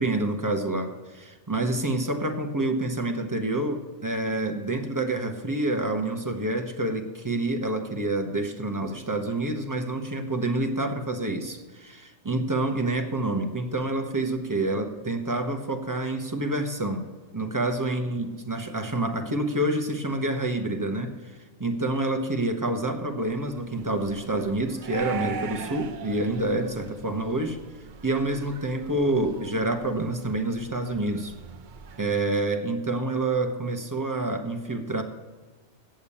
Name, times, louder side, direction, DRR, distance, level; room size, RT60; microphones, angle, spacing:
voice 1, 0.0-17.0 17.3-21.3 21.6-27.6 28.0-31.3 32.0-35.0, right 2 dB, 15° right, 4 dB, 0.8 m, -28 dB
sound 1, 23.3-32.0, right 7 dB, 55° right, 0.5 m, -41 dB
8.9 x 7.0 x 8.4 m, 1.3 s
omnidirectional pair, 1.4 m